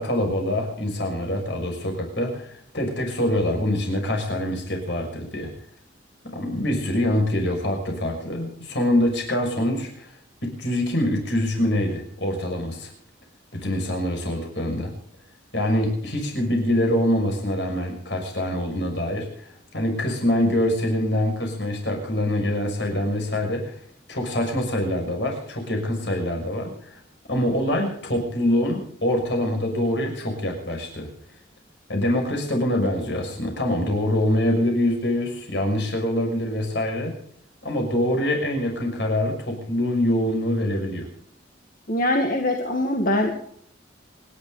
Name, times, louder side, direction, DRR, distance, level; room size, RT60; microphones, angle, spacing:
voice 1, 0.0-5.5 6.3-10.1 10.4-12.9 13.5-14.9 15.5-23.8 24.1-27.0 27.3-31.1 31.9-37.2 37.6-41.1, left 1 dB, 60° left, 2 dB, 6.2 m, -25 dB
voice 2, 41.9-43.4, left 1 dB, 45° left, 2 dB, 2.0 m, -23 dB
28.5 x 11.5 x 4.0 m, 0.65 s
head